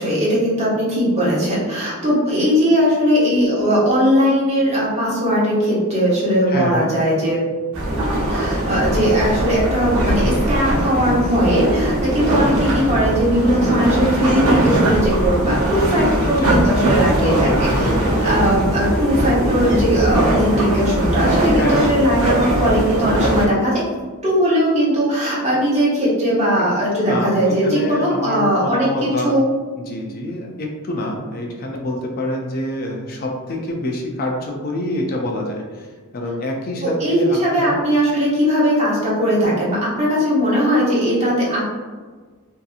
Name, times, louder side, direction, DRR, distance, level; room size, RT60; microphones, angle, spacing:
voice 1, 0.0-7.4 8.3-17.9 18.2-23.8 24.2-29.5 36.8-41.6, equal, 30° right, -7 dB, 0.9 m, -19 dB
voice 2, 6.5-6.9 16.2-16.6 17.2-18.3 21.6-21.8 26.6-29.3 29.8-35.9 36.1-37.8, left 1 dB, 45° left, 0 dB, 0.4 m, -26 dB
sound 1, 7.7-23.5, right 1 dB, 65° right, 0.6 m, -20 dB
2.7 x 2.5 x 2.4 m, 1.4 s
head